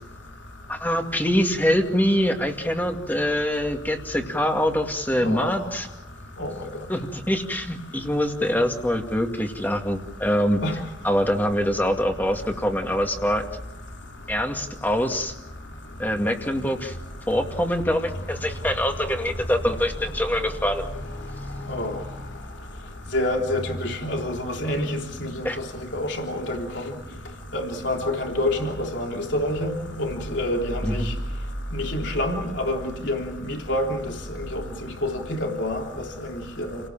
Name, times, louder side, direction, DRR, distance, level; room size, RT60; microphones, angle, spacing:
voice 1, 0.7-5.9 6.9-10.6 11.0-13.4 14.3-15.3 16.0-17.0 17.3-20.8 25.4-25.6 30.8-31.1, equal, 10° left, 3 dB, 2.3 m, -24 dB
voice 2, 23.1-25.4 25.9-26.6 27.5-31.0 31.7-34.0 34.5-34.6 35.0-35.8 36.3-36.8, left 1 dB, 70° left, 2 dB, 3.4 m, -27 dB
29.5 x 18.5 x 7.5 m, 0.88 s
head